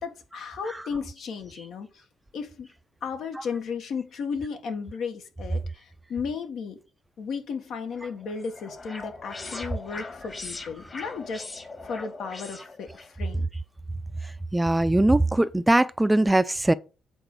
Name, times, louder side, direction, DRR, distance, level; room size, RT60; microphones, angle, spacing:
voice 1, 0.0-1.9 2.3-2.7 3.0-6.8 7.2-11.4 11.9-12.9 13.1-13.5, left 5 dB, 70° left, 1.7 m, -34 dB
sound 1, 7.9-13.1, left 3 dB, 30° left, 1.8 m, -40 dB
voice 2, 14.5-16.7, right 1 dB, 10° right, 0.5 m, -21 dB
8.1 x 4.2 x 6.7 m
cardioid pair, 90°, 0 cm